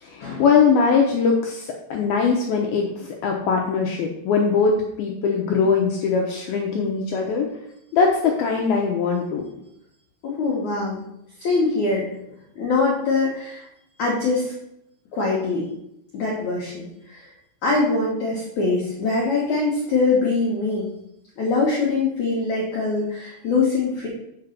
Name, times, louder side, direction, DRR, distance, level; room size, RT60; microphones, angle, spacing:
voice 1, 0.0-7.5 7.9-9.4, left 5 dB, 80° left, 0 dB, 2.1 m, -21 dB
voice 2, 10.2-11.0 11.4-12.1 12.6-13.6 14.0-14.5 15.1-15.7 16.1-17.3 17.6-20.9 21.4-24.1, left 3 dB, 60° left, -5 dB, 2.1 m, -23 dB
7.7 x 5.2 x 5.8 m, 0.80 s
omnidirectional pair, 5.4 m